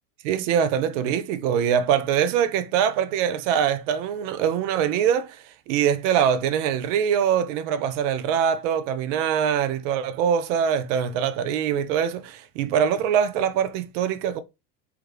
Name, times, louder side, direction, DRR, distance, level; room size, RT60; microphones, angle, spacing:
voice 1, 0.2-14.4, right 8 dB, 50° right, 0.6 m, -23 dB
3.5 x 2.3 x 3.1 m
hypercardioid pair, 105°, 49 cm